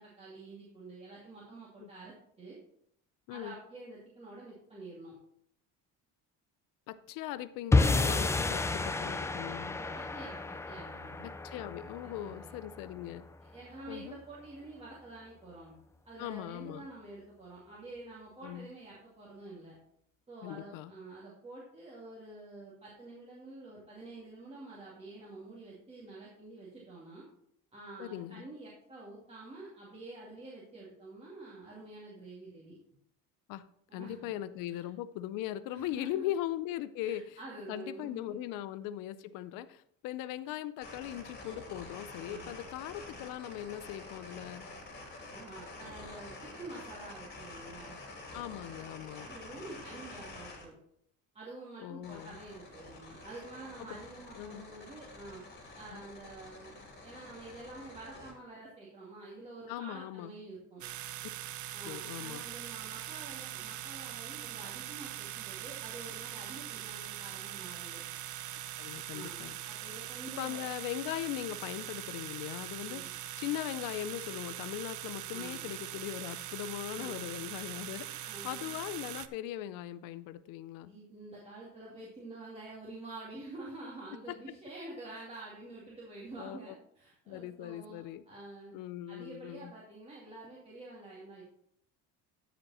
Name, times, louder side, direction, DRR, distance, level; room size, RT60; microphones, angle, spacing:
voice 1, 0.0-2.6 3.3-5.1 9.7-11.3 12.2-12.5 13.4-15.7 16.0-19.8 20.3-27.3 27.7-32.8 33.9-34.3 34.7-34.9 35.7-36.3 37.0-38.4 42.2-42.5 45.3-48.0 49.2-50.7 51.3-55.4 55.7-56.8 57.0-60.8 61.7-68.0 69.1-70.6 72.8-73.1 75.3-75.8 76.9-77.6 77.9-78.8 80.8-88.8 89.1-91.4, right 2 dB, 20° right, -6 dB, 2.5 m, -48 dB
voice 2, 6.9-9.8 11.2-13.2 13.9-14.2 16.2-16.9 18.4-18.7 20.4-20.9 28.0-28.5 33.5-33.6 33.9-37.4 37.7-44.7 48.3-49.3 51.8-52.4 53.9-54.0 54.4-54.7 55.9-56.0 59.7-60.3 61.8-62.4 68.8-69.6 70.4-80.9 84.3-84.4 86.4-86.7 87.3-88.2 88.7-89.7, left 13 dB, 80° left, 15 dB, 0.6 m, -40 dB
sound 1, 7.7-14.1, left 3 dB, 10° left, 0.3 m, -31 dB
sound 2, 40.8-50.7 52.0-58.3, left 2 dB, 30° left, 2.6 m, -48 dB
sound 3, 60.8-79.3, right 13 dB, 60° right, 0.7 m, -42 dB
13.5 x 5.2 x 4.2 m, 0.70 s
cardioid pair, 140°, 33 cm